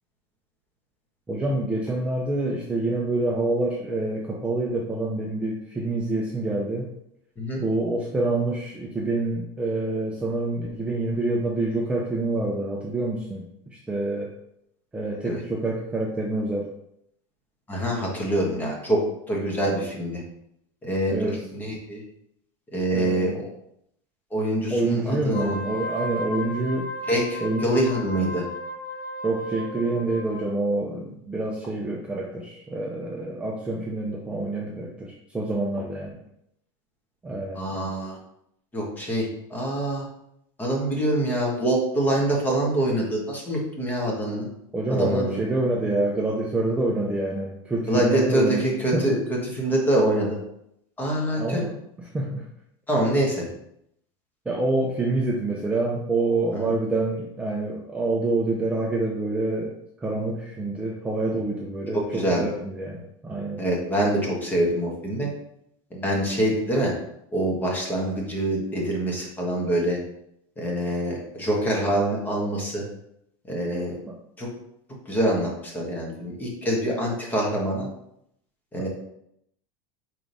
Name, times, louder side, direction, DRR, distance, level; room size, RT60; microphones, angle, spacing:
voice 1, 1.3-6.9 7.6-13.4 13.9-14.3 14.9-16.7 21.1-21.4 22.9-23.4 24.7-26.9 27.4-27.8 29.2-36.1 37.2-37.9 44.7-49.1 51.3-51.7 52.1-52.4 54.5-59.7 60.0-63.6 74.1-74.2, right 2 dB, 10° right, -2 dB, 0.6 m, -27 dB
voice 2, 17.7-19.0 19.3-20.2 20.8-22.0 22.7-23.5 24.3-25.6 27.1-28.4 37.5-38.2 38.7-40.0 40.6-44.5 44.9-45.4 47.9-50.4 51.0-51.6 52.9-53.5 56.5-56.7 61.9-62.5 63.6-65.3 65.9-66.9 67.3-70.0 70.6-72.8 73.5-74.0 74.4-74.5 75.0-77.9 78.7-78.9, right 1 dB, 15° left, -2 dB, 1.6 m, -25 dB
Wind instrument woodwind instrument, 25.2-30.5, equal, 60° left, 1.0 m, -35 dB
4.7 x 3.8 x 5.3 m, 0.76 s
supercardioid pair, 155°, 13 cm